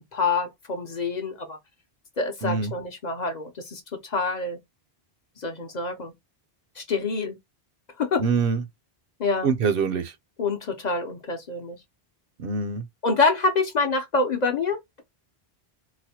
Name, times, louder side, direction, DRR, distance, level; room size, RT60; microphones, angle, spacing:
voice 1, 0.1-1.6 2.2-4.6 5.4-6.1 6.8-7.4 8.0-8.2 9.2-9.5 10.4-11.8 13.0-15.0, left 3 dB, 50° left, 0.7 m, -26 dB
voice 2, 2.4-2.7 8.2-8.6 9.4-10.1 12.4-12.8, right 5 dB, 70° right, 0.8 m, -24 dB
4.0 x 2.1 x 2.8 m
omnidirectional pair, 1.0 m